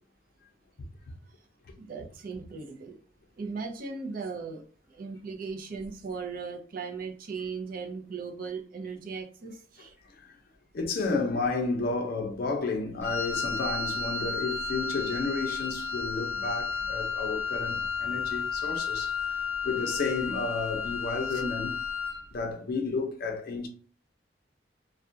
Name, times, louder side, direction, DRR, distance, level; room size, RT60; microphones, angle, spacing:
voice 1, 1.8-3.0 3.4-9.9 21.3-21.4, right 5 dB, 50° right, 0.4 m, -38 dB
voice 2, 10.7-19.4 19.6-21.7 22.3-23.7, left 3 dB, 55° left, 0.5 m, -32 dB
Wind instrument woodwind instrument, 13.0-22.3, left 5 dB, 15° left, 0.8 m, -32 dB
2.3 x 2.2 x 2.6 m
head